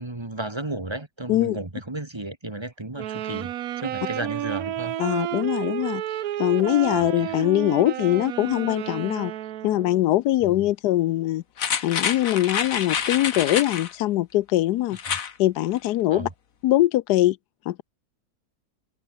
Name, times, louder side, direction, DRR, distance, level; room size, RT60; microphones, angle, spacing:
voice 1, 0.0-3.5 3.8-4.9 6.9-7.5 10.4-10.6 15.1-15.2 16.1-16.3, right 2 dB, 15° right, 1.6 m, -34 dB
sound 1, 3.0-10.0, right 12 dB, 70° right, 1.2 m, -31 dB
voice 2, 5.0-6.0 6.4-9.3 9.6-11.4 11.8-15.0 15.4-16.3 16.6-17.4 17.7-17.8, left 15 dB, 90° left, 1.2 m, -22 dB
sound 2, 11.6-13.9 14.9-15.3 15.7-15.8, left 7 dB, 60° left, 1.7 m, -27 dB
omnidirectional pair, 1.7 m